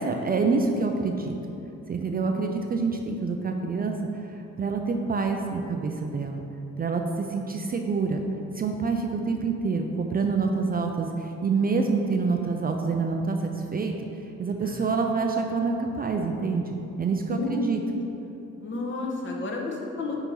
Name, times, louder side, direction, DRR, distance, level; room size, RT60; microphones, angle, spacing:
voice 1, 0.0-1.3 1.9-6.4 6.8-8.2 8.5-13.9 14.4-17.8, right 4 dB, 30° right, 3 dB, 0.4 m, -27 dB
voice 2, 17.3-17.9 18.6-20.2, left 2 dB, 40° left, -1 dB, 1.1 m, -31 dB
6.8 x 2.9 x 5.4 m, 2.9 s
cardioid pair, 90°, 30 cm